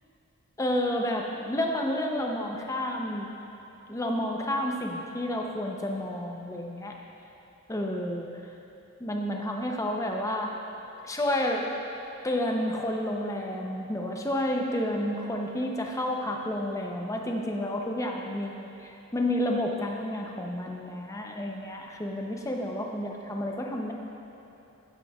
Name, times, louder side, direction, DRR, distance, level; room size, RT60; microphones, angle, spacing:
voice 1, 0.6-3.3 3.9-6.9 7.7-8.3 9.0-10.5 11.0-11.7 12.2-23.9, left 1 dB, 15° left, 1 dB, 0.6 m, -30 dB
11.5 x 9.5 x 2.3 m, 3.0 s
head